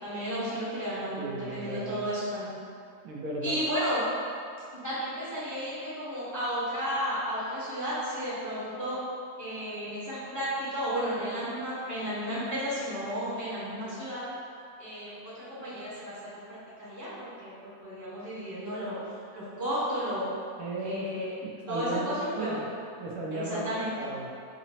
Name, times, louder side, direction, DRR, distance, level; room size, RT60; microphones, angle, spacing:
voice 1, 0.0-2.6 3.4-4.0 4.7-9.0 9.4-14.2 14.8-19.0 19.3-20.3 20.8-21.3 21.7-22.6 23.3-23.9, equal, 15° left, -12 dB, 0.8 m, -33 dB
voice 2, 1.2-2.1 3.0-3.6 20.6-21.1 21.7-22.6 23.0-24.3, right 1 dB, 80° right, -3 dB, 1.1 m, -35 dB
3.9 x 2.0 x 4.0 m, 2.4 s
omnidirectional pair, 1.6 m